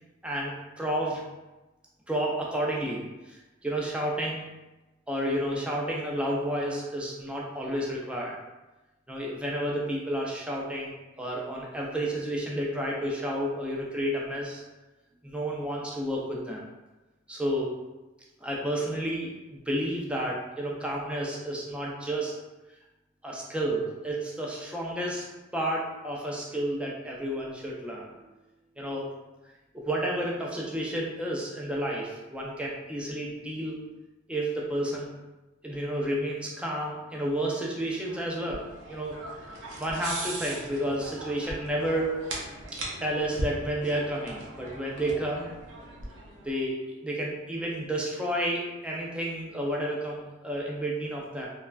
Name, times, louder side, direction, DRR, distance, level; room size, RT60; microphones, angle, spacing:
voice 1, 0.2-1.2 2.1-4.4 5.1-8.4 9.1-14.6 15.2-16.6 17.3-17.7 18.4-22.3 23.2-25.3 25.5-28.2 28.8-29.1 29.7-33.8 34.3-35.1 35.6-39.2 39.8-42.2 43.0-45.5 46.4-51.5, right 1 dB, 5° right, -3 dB, 0.4 m, -31 dB
sound 1, 38.0-46.6, right 1 dB, 80° right, 0.6 m, -39 dB
3.1 x 2.3 x 2.2 m, 1.1 s
head